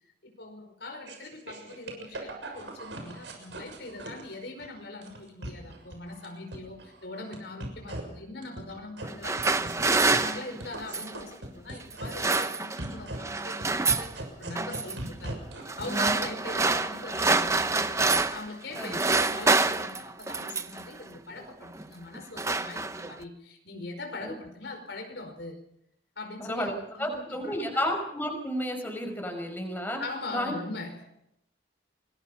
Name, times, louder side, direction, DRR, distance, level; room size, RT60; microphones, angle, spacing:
voice 1, 0.2-9.8 10.1-18.0 18.3-25.6 26.1-27.9 30.0-31.1, left 2 dB, 70° left, 4 dB, 5.1 m, -41 dB
sound 1, 1.0-4.7 5.0-6.3 6.5-7.4 7.6-8.0 8.4-9.0 9.4-10.3 10.6-12.1 12.4-12.5 12.8-16.1, right 1 dB, 85° right, 6.7 m, -39 dB
sound 2, 9.0-11.2 11.9-12.9 13.2-14.1 14.6-15.0 15.7-18.5 18.7-20.9 21.6-21.9 22.1-23.2, right 3 dB, 15° right, 0.8 m, -27 dB
voice 2, 26.4-30.0 30.3-30.5, equal, 10° left, 2 dB, 5.7 m, -32 dB
27.0 x 21.5 x 5.6 m, 0.79 s
head